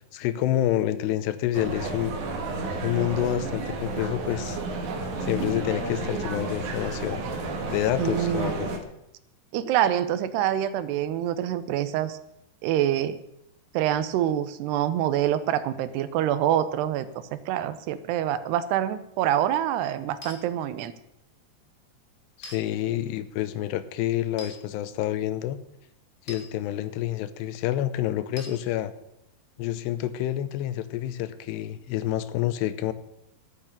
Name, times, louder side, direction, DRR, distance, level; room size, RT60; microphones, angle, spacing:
voice 1, 0.1-2.1 2.8-4.6 5.2-7.2 7.7-8.7 22.4-25.6 26.3-28.9 29.6-32.9, left 13 dB, 90° left, 13 dB, 3.0 m, -28 dB
sound 1, 1.5-8.8, right 3 dB, 60° right, 2.6 m, -31 dB
voice 2, 8.0-8.5 9.5-12.2 12.6-13.2 13.7-20.9, right 11 dB, 80° right, 13 dB, 2.8 m, -26 dB
sound 2, 20.2-20.4 22.4-22.6 24.4-24.6 26.3-26.5 28.4-28.6, left 1 dB, 45° left, 0.6 m, -41 dB
12.0 x 8.4 x 8.8 m, 0.82 s
omnidirectional pair, 4.7 m